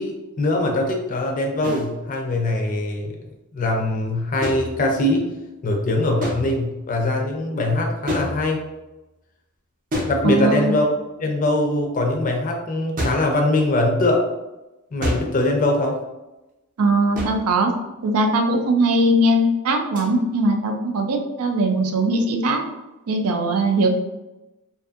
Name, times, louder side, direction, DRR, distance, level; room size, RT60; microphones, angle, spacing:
voice 1, 0.0-5.3 5.6-8.6 10.1-14.3 14.9-16.0, left 1 dB, 35° left, 1 dB, 0.5 m, -22 dB
sound 1, 1.6-1.9 4.4-5.2 6.2-6.8 8.1-8.8 9.9-10.8 13.0-13.4 15.0-15.5 17.2-17.6 20.0-20.1, equal, 40° right, 0.6 m, -29 dB
voice 2, 10.2-10.7 16.8-17.7 18.0-22.6 23.1-23.9, right 1 dB, 80° right, 4 dB, 0.4 m, -20 dB
2.6 x 2.5 x 2.4 m, 1.0 s
head